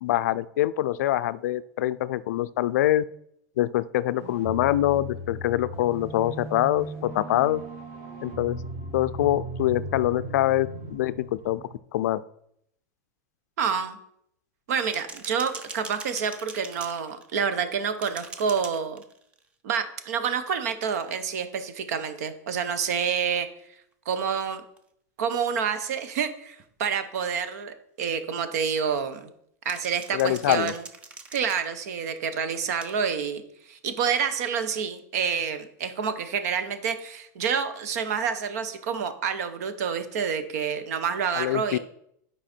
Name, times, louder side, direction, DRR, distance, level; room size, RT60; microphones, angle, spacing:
voice 1, 0.0-3.0 3.6-7.6 8.2-8.6 8.9-11.6 11.9-12.2 30.1-30.7 41.3-41.8, left 14 dB, 70° left, 15 dB, 0.4 m, -24 dB
sound 1, 4.2-11.8, right 1 dB, 30° right, 1.5 m, -37 dB
voice 2, 13.6-14.0 14.7-19.0 19.6-23.5 24.1-24.6 25.2-29.3 29.6-30.8 31.3-33.4 33.7-41.8, right 7 dB, 65° right, 10 dB, 0.9 m, -28 dB
sound 2, 14.9-17.6 18.0-19.5 20.8-21.2 24.1-24.2 24.8-24.9 26.6-26.7 29.7-32.1 32.8-33.0, right 4 dB, 10° right, 0.4 m, -42 dB
10.5 x 4.8 x 4.3 m, 0.72 s
supercardioid pair, 175°, 9 cm